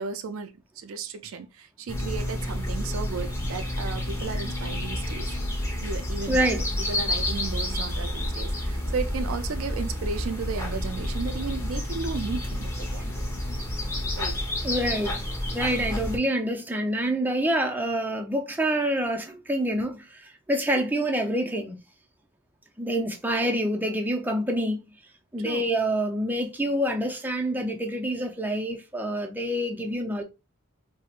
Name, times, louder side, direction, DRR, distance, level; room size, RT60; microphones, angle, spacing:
voice 1, 0.0-5.3 5.8-13.3 14.2-14.4 25.4-25.7, right 5 dB, 65° right, 0.4 m, -34 dB
sound 1, 1.9-16.2, left 1 dB, 10° left, 1.0 m, -30 dB
voice 2, 6.3-6.7 14.6-21.8 22.8-24.8 25.3-30.2, right 1 dB, 10° right, 0.5 m, -27 dB
4.3 x 2.1 x 2.4 m
head